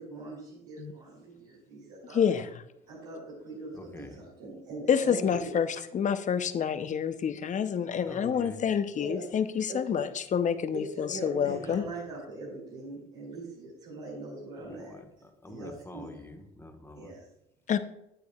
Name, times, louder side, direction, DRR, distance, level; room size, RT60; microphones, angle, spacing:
voice 1, 0.0-2.2 2.9-5.6 9.0-9.3 9.7-9.8 10.7-15.0 15.5-16.1 16.9-17.3, right 2 dB, 80° right, -6 dB, 2.5 m, -41 dB
voice 2, 2.1-2.5 4.9-11.8 17.7-17.8, left 7 dB, 40° left, 12 dB, 0.7 m, -28 dB
voice 3, 3.7-4.2 5.2-5.3 8.1-8.6 11.5-11.8 14.6-17.1, left 1 dB, 10° left, 4 dB, 1.3 m, -46 dB
8.7 x 8.6 x 2.3 m, 0.86 s
hypercardioid pair, 60°, 20 cm